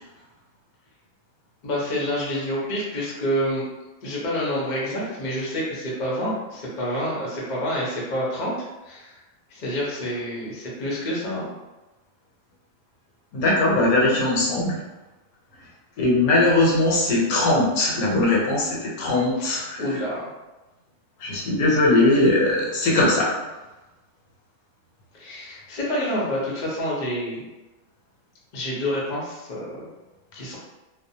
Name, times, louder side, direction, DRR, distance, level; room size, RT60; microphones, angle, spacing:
voice 1, 1.6-3.6 4.0-8.5 8.8-9.2 9.5-11.5 19.8-20.2 25.1-27.4 28.5-29.9 30.3-30.6, equal, 45° left, -5 dB, 0.6 m, -28 dB
voice 2, 13.3-14.8 16.0-19.8 21.2-23.3, left 2 dB, 80° left, -3 dB, 1.1 m, -20 dB
2.6 x 2.1 x 2.7 m, 1.1 s
omnidirectional pair, 1.5 m